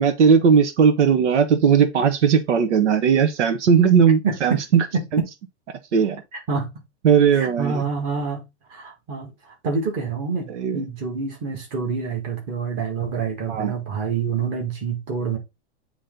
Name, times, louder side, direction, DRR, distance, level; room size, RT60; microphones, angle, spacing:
voice 1, 0.0-4.9 5.1-5.2 5.9-6.2 7.0-7.8 10.5-10.8 13.5-13.7, right 7 dB, 85° right, 1.3 m, -18 dB
voice 2, 4.2-4.6 4.9-5.0 6.3-6.7 7.3-8.4 8.7-15.4, right 5 dB, 25° right, 1.7 m, -27 dB
8.4 x 3.3 x 3.8 m
supercardioid pair, 175°, 34 cm